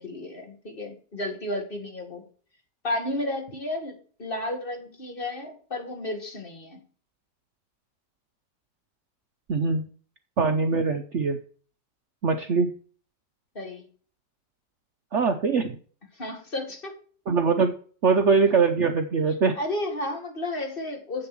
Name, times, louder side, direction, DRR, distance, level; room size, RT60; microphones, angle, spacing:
voice 1, 0.0-2.2 2.8-6.8 13.6-13.8 16.1-16.9 19.5-21.3, left 1 dB, 30° left, 4 dB, 2.1 m, -32 dB
voice 2, 9.5-9.9 10.4-11.4 12.2-12.7 15.1-15.8 17.3-17.7 18.0-19.6, right 4 dB, 55° right, 6 dB, 0.9 m, -22 dB
7.9 x 6.8 x 6.0 m, 0.43 s
omnidirectional pair, 1.9 m